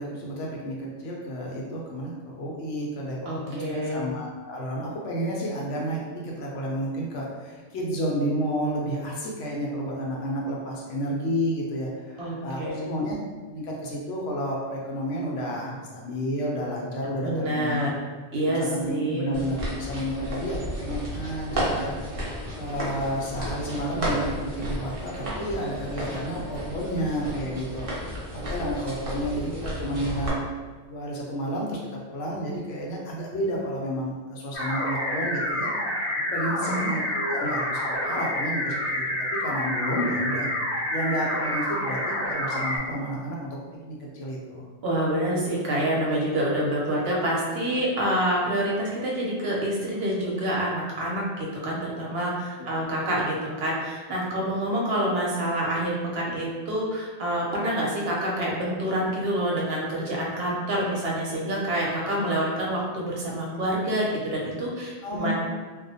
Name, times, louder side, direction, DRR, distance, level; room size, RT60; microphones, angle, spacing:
voice 1, 0.0-13.2 13.5-17.8 18.5-22.0 22.6-27.9 28.3-30.3 30.9-31.8 32.1-35.7 36.3-39.0 39.3-40.5 40.9-43.6 43.9-44.7 52.6-52.7 65.0-65.3, equal, 85° left, -3 dB, 0.9 m, -31 dB
voice 2, 3.3-4.0 12.2-12.9 17.2-17.9 18.3-19.3 36.6-36.9 44.8-65.3, right 1 dB, 65° right, -4 dB, 0.8 m, -27 dB
sound 1, 19.3-30.3, equal, 45° right, 0.4 m, -33 dB
sound 2, 34.5-42.8, left 1 dB, 45° left, 0.8 m, -28 dB
2.4 x 2.1 x 2.6 m, 1.3 s
omnidirectional pair, 1.2 m